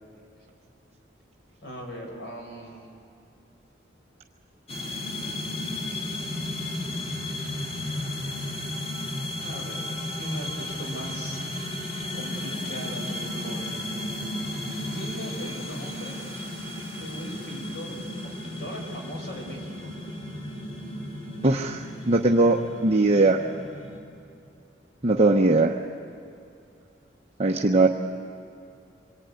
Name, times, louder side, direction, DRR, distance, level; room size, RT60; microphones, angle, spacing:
voice 1, 1.6-2.9 5.2-5.3 9.4-11.4 12.1-13.7 14.8-16.2 17.0-18.0 18.4-19.9, equal, 65° left, 1 dB, 4.8 m, -39 dB
sound 1, 4.7-24.0, left 1 dB, 35° left, 4.1 m, -34 dB
voice 2, 21.4-23.4 25.0-25.8 27.4-27.9, right 2 dB, 35° right, 1 dB, 1.0 m, -20 dB
26.5 x 22.5 x 9.6 m, 2.6 s
head